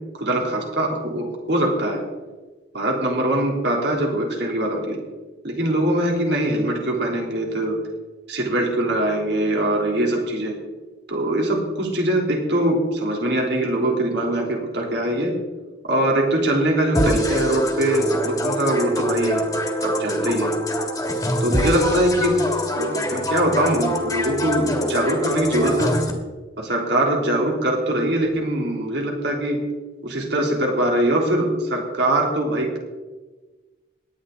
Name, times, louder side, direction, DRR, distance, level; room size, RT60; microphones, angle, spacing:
voice 1, 0.1-2.0 2.7-5.0 5.4-7.8 8.3-10.5 11.1-15.4 15.8-19.4 19.8-20.5 21.4-22.5 22.8-26.0 26.6-29.6 30.0-32.8, right 1 dB, 65° right, 0 dB, 3.4 m, -22 dB
sound 1, 16.9-26.1, equal, 15° left, 1.9 m, -25 dB
18.0 x 11.5 x 3.9 m, 1.2 s
head